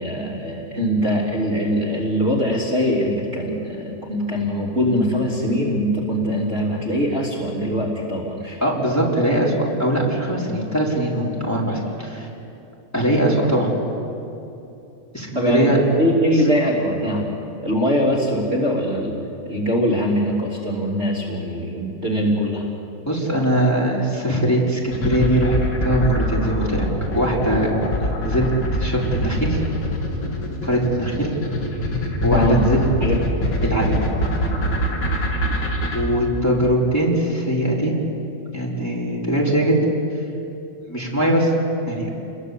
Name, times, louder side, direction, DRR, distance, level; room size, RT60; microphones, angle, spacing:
voice 1, 0.0-8.6 15.3-17.3 17.6-19.2 19.4-22.6 32.3-32.7 33.0-33.2, equal, 30° right, -4 dB, 3.3 m, -22 dB
voice 2, 8.6-9.5 9.8-12.3 12.9-13.7 15.1-15.8 23.1-25.5 25.8-26.9 27.1-27.7 28.2-28.5 28.8-29.6 30.6-31.3 32.2-32.8 33.6-34.0 35.9-37.9 38.5-39.8 40.9-41.5 41.9-42.1, right 1 dB, 5° left, -4 dB, 4.7 m, -21 dB
sound 1, 24.9-36.0, left 1 dB, 70° left, 3.8 m, -23 dB
30.0 x 22.0 x 8.3 m, 2.8 s
omnidirectional pair, 2.2 m